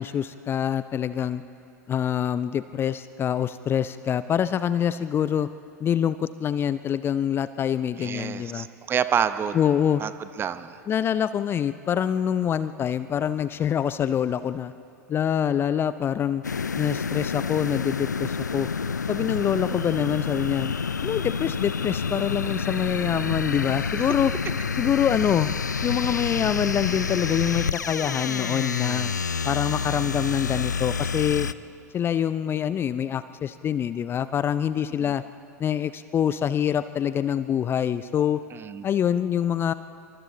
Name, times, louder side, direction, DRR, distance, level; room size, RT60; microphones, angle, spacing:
voice 1, 0.0-1.4 1.9-5.5 5.8-8.7 9.5-10.0 10.9-14.7 15.1-16.4 16.8-18.7 19.1-20.7 21.0-24.3 24.8-25.5 25.8-29.1 29.4-31.5 31.9-35.2 35.6-38.4 38.8-39.7, left 9 dB, 25° left, 14 dB, 0.5 m, -25 dB
voice 2, 8.0-9.6 10.0-10.1 10.4-10.8 35.0-35.1 38.5-38.8, right 8 dB, 25° right, 12 dB, 0.9 m, -28 dB
sound 1, 16.4-31.5, left 5 dB, 80° left, 0.5 m, -28 dB
27.0 x 24.5 x 3.9 m, 2.7 s
figure-of-eight pair, 85°, 9 cm